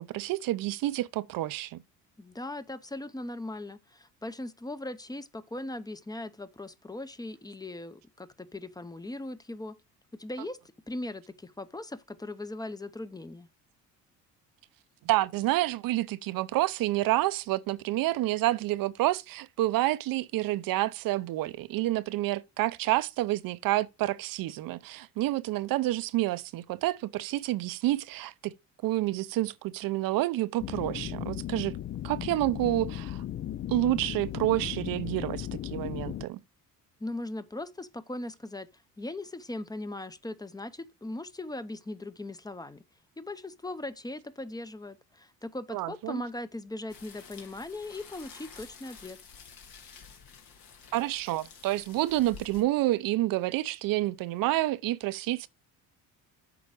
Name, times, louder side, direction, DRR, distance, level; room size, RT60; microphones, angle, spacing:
voice 1, 0.0-1.8 15.0-28.5 28.8-31.7 32.0-33.2 33.7-36.4 45.7-46.2 50.9-55.5, right 16 dB, 70° right, 0.7 m, -29 dB
voice 2, 2.2-9.8 10.2-10.6 10.9-13.5 37.0-38.7 39.0-42.8 43.2-49.2, left 2 dB, 10° left, 0.7 m, -39 dB
sound 1, 30.6-36.3, left 11 dB, 35° left, 0.4 m, -36 dB
sound 2, 46.9-52.6, left 6 dB, 70° left, 2.1 m, -50 dB
8.4 x 5.0 x 4.9 m
supercardioid pair, 85°, 36 cm